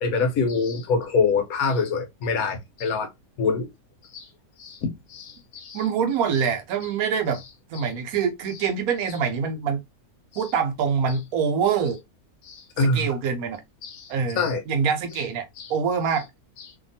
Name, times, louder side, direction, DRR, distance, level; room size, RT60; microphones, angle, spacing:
voice 1, 0.0-3.1 3.4-3.7 4.1-4.3 4.6-5.8 10.3-10.4 12.4-13.1 13.8-14.6 15.6-15.7, left 4 dB, 75° left, 1.2 m, -25 dB
voice 2, 5.7-7.4 7.7-9.8 10.4-12.0 12.8-13.6 14.1-15.4 15.7-16.3, right 6 dB, 75° right, 1.1 m, -25 dB
2.8 x 2.6 x 2.6 m
omnidirectional pair, 1.6 m